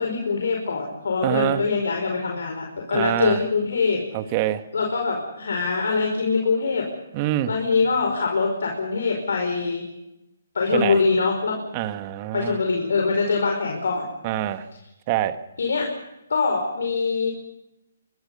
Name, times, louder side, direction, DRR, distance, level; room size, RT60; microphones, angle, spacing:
voice 1, 0.0-4.0 4.7-6.9 7.5-9.9 10.5-11.6 12.3-14.1 15.6-15.9 16.3-17.3, left 4 dB, 70° left, 2 dB, 5.1 m, -23 dB
voice 2, 1.2-1.6 2.9-3.4 4.1-4.6 7.1-7.5 10.7-11.0 11.7-12.6 14.2-14.7 15.1-15.3, right 13 dB, 30° right, 10 dB, 1.6 m, -25 dB
24.5 x 23.0 x 5.5 m, 0.93 s
hypercardioid pair, 145°, 0 cm